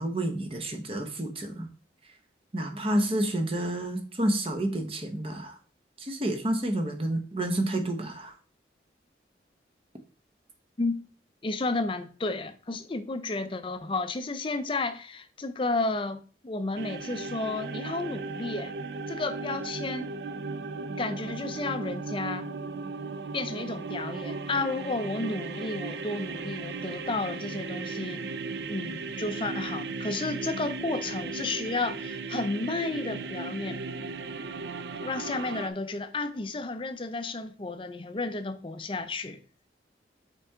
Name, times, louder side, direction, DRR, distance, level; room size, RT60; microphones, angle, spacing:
voice 1, 0.0-1.7 2.5-5.5 6.0-8.3, right 1 dB, 30° right, 0.9 m, -29 dB
voice 2, 11.4-18.7 19.1-20.1 21.0-22.5 23.3-28.3 28.7-33.8 35.0-39.4, left 3 dB, 30° left, 0.5 m, -32 dB
sound 1, 16.8-35.7, right 4 dB, 65° right, 0.4 m, -36 dB
5.8 x 4.6 x 3.6 m
head